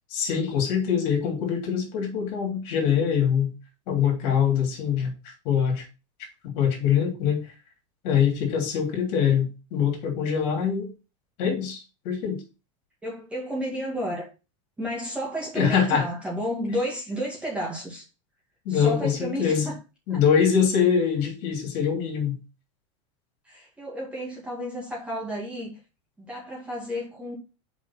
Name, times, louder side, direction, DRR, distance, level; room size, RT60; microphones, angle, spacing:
voice 1, 0.1-3.5 3.9-5.8 6.4-7.5 8.0-10.9 11.4-12.4 15.5-16.0 18.6-19.7 20.1-22.4, left 7 dB, 50° left, 3.1 m, -24 dB
voice 2, 13.0-14.3 14.8-18.1 18.7-19.7 20.1-20.2 23.5-25.8 26.2-27.4, equal, 5° right, 2.2 m, -32 dB
5.2 x 5.2 x 5.8 m
supercardioid pair, 155°, 17 cm